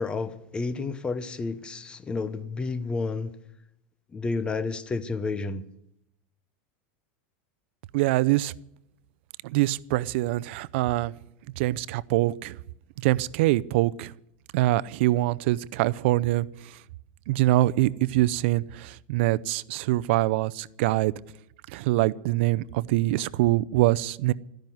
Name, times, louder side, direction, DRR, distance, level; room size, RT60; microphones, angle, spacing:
voice 1, 0.0-3.3 4.1-5.6, left 4 dB, 15° left, 13 dB, 0.9 m, -30 dB
voice 2, 7.9-8.5 9.4-11.1 11.6-12.6 13.0-14.1 14.5-16.5 17.3-21.1 21.7-24.3, right 17 dB, 65° right, 17 dB, 0.5 m, -24 dB
13.5 x 10.5 x 9.3 m, 0.78 s
supercardioid pair, 155°, 7 cm